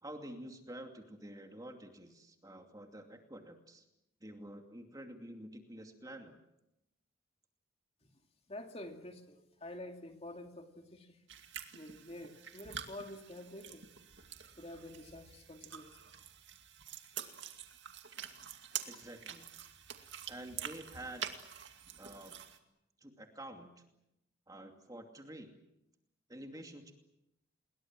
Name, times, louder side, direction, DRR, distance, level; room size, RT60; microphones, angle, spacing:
voice 1, 0.0-3.8 4.2-6.4 18.9-19.5 20.3-21.2 22.0-22.4 23.0-23.7 24.5-25.5 26.3-26.9, right 1 dB, 15° right, 4 dB, 2.6 m, -49 dB
voice 2, 8.5-11.1 11.7-13.8 14.6-15.9, left 1 dB, 30° left, 4 dB, 2.6 m, -48 dB
sound 1, 11.3-22.6, right 9 dB, 60° right, 2.4 m, -47 dB
29.5 x 22.0 x 7.6 m, 0.88 s
head